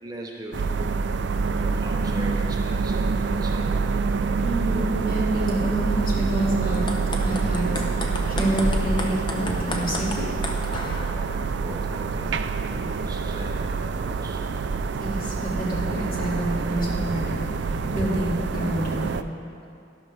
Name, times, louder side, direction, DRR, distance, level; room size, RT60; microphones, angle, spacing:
voice 1, 0.0-1.0 1.6-3.8 10.8-12.5 13.1-14.5, right 1 dB, 20° right, 1 dB, 0.5 m, -40 dB
sound 1, 0.5-19.2, right 4 dB, 65° right, 0.4 m, -26 dB
voice 2, 4.4-6.9 7.2-7.7 8.3-10.4 15.0-17.5 17.8-19.1, right 1 dB, 45° left, -5 dB, 2.4 m, -27 dB
sound 2, 6.7-11.1, left 1 dB, 25° left, 0.7 m, -32 dB
sound 3, 7.0-7.4 8.4-8.8 9.2-9.3 9.9-10.5 11.4-12.0 12.7-13.2 14.2-14.6 15.1-15.3 15.6-16.0, equal, 5° left, 2.5 m, -45 dB
12.5 x 11.5 x 3.4 m, 2.5 s
head